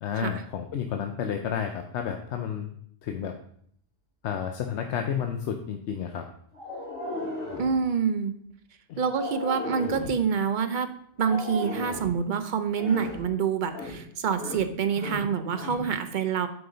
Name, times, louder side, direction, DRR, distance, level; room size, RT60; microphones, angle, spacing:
voice 1, 0.0-2.7 3.0-3.4 4.2-6.3 8.9-9.0 10.0-10.1, left 8 dB, 75° left, 5 dB, 0.9 m, -31 dB
sound 1, 6.5-7.8 9.0-10.2 11.2-12.1 12.7-13.2 13.7-14.0 14.3-14.7 14.9-15.9, left 1 dB, 30° left, 3.6 m, -35 dB
voice 2, 7.6-8.3 9.0-10.9 11.2-16.5, right 6 dB, 50° right, 8 dB, 0.7 m, -27 dB
7.9 x 5.0 x 3.8 m, 0.65 s
omnidirectional pair, 1.2 m